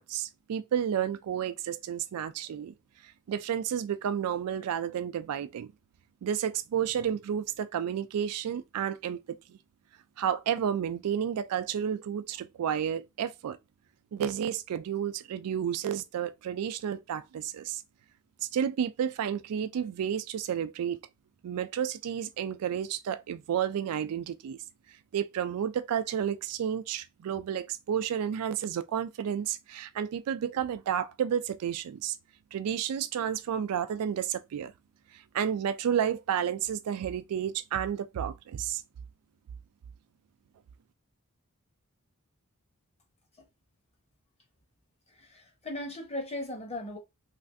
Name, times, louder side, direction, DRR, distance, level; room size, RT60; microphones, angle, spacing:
voice 1, 0.0-2.7 3.3-5.7 6.2-9.6 10.2-13.6 14.1-17.8 18.5-21.0 21.4-24.6 25.1-32.2 32.5-34.7 35.3-38.8, right 9 dB, 85° right, 0.3 m, -31 dB
voice 2, 45.1-47.0, left 1 dB, 30° left, 0.9 m, -38 dB
3.2 x 2.5 x 2.5 m
head